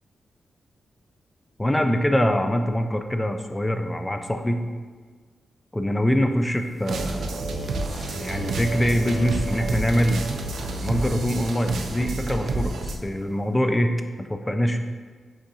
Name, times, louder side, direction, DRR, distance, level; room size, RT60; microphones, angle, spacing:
voice 1, 1.6-4.6 5.7-7.4 8.2-10.2 10.8-13.9 14.2-14.8, equal, 15° left, 6 dB, 0.3 m, -24 dB
sound 1, 6.0-13.6, equal, 30° left, 1.4 m, -49 dB
sound 2, 6.8-13.0, right 2 dB, 85° right, 0.4 m, -29 dB
7.3 x 2.6 x 2.7 m, 1.5 s
cardioid pair, 70°, 0 cm